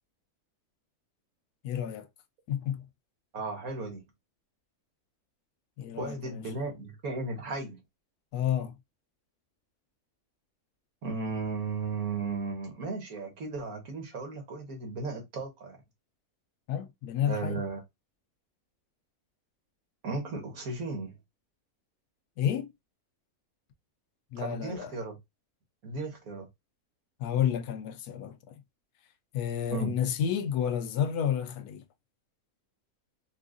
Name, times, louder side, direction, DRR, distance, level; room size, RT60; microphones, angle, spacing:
voice 1, 1.6-2.1 2.5-2.9 5.8-6.4 8.3-8.7 16.7-17.6 22.4-22.7 24.3-24.9 27.2-28.6 29.3-31.8, left 9 dB, 85° left, 1.1 m, -30 dB
voice 2, 3.3-4.0 6.0-7.8 11.0-15.8 17.2-17.8 20.0-21.1 24.4-25.2 25.8-26.5 29.7-29.9, right 3 dB, 70° right, 1.7 m, -35 dB
4.5 x 2.4 x 2.5 m
omnidirectional pair, 1.6 m